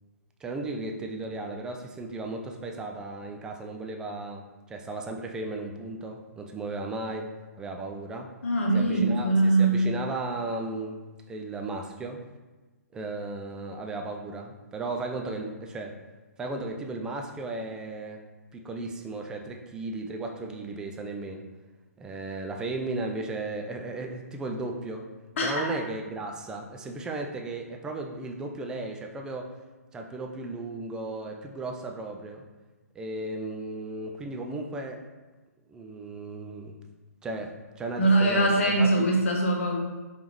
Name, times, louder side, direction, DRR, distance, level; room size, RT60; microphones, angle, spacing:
voice 1, 0.4-8.3 8.7-11.0 11.3-12.2 12.9-16.0 16.4-18.2 18.5-21.5 22.0-25.1 25.4-29.5 29.9-32.4 33.0-35.0 35.7-36.8 37.2-39.1, right 2 dB, 10° right, 2 dB, 0.3 m, -35 dB
voice 2, 8.4-9.8 25.4-25.7 38.0-39.8, right 2 dB, 50° left, 0 dB, 1.0 m, -22 dB
5.1 x 3.3 x 3.0 m, 1.2 s
figure-of-eight pair, 125°, 9 cm